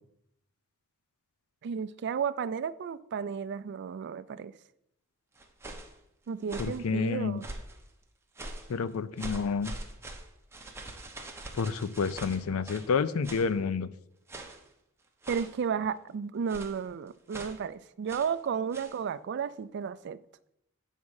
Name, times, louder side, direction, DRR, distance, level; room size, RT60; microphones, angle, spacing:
voice 1, 1.6-4.5 6.3-7.5 15.3-20.2, right 6 dB, 55° right, 0.3 m, -33 dB
sound 1, 5.4-6.0 6.4-6.9 7.4-7.8 8.4-8.7 9.2-12.9 13.2-13.5 14.3-14.7 15.2-15.6 16.5-16.8 17.3-17.6 18.1-18.4 18.7-19.0, right 2 dB, 10° right, 0.7 m, -43 dB
voice 2, 6.6-7.4 8.7-9.7 11.5-13.9, left 5 dB, 85° left, 0.4 m, -29 dB
8.3 x 3.6 x 6.3 m
head